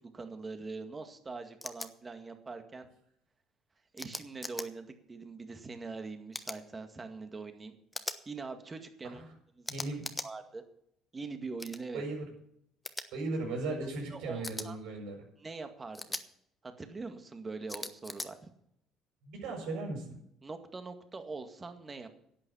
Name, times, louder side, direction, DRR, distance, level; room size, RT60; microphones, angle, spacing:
voice 1, 0.0-2.9 3.9-7.7 8.3-9.2 9.5-9.9 10.2-10.6 11.1-12.0 14.1-14.8 15.4-16.2 16.6-18.5 20.4-22.2, right 4 dB, 25° right, 7 dB, 2.0 m, -43 dB
sound 1, 1.6-1.9 4.0-4.7 6.3-6.6 7.9-8.2 9.6-10.3 11.6-11.8 12.8-13.0 14.4-14.7 15.9-16.2 17.7-18.3, left 2 dB, 10° left, 1.1 m, -39 dB
voice 2, 9.7-10.0 11.9-12.2 13.1-15.2 19.2-20.0, right 3 dB, 85° right, -1 dB, 6.2 m, -37 dB
11.5 x 8.9 x 7.3 m, 0.73 s
cardioid pair, 100°, 0 cm